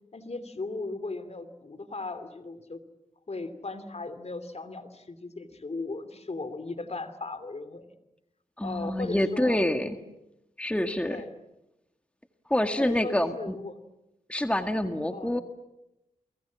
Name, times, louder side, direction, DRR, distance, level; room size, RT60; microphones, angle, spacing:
voice 1, 0.1-2.8 3.3-7.9 8.6-9.6 11.0-11.3 12.8-13.8 15.1-15.4, left 3 dB, 45° left, 10 dB, 2.8 m, -37 dB
voice 2, 8.6-10.0 10.6-11.2 12.5-13.6 14.3-15.4, left 1 dB, 10° left, 7 dB, 1.8 m, -27 dB
30.0 x 23.5 x 7.5 m, 0.89 s
cardioid pair, 65°, 15 cm